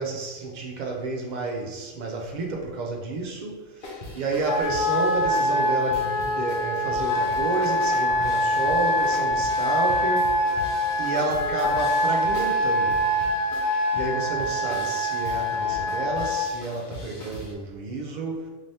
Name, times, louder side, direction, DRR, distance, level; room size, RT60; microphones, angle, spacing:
voice 1, 0.0-3.6 4.1-10.6 11.0-13.0 13.9-18.5, right 3 dB, 60° right, 0 dB, 0.4 m, -30 dB
sound 1, 3.8-17.5, left 1 dB, 50° left, 0.7 m, -41 dB
Wind instrument woodwind instrument, 4.4-16.5, left 1 dB, 75° left, 1.0 m, -24 dB
3.8 x 3.3 x 2.7 m, 1.3 s
omnidirectional pair, 1.4 m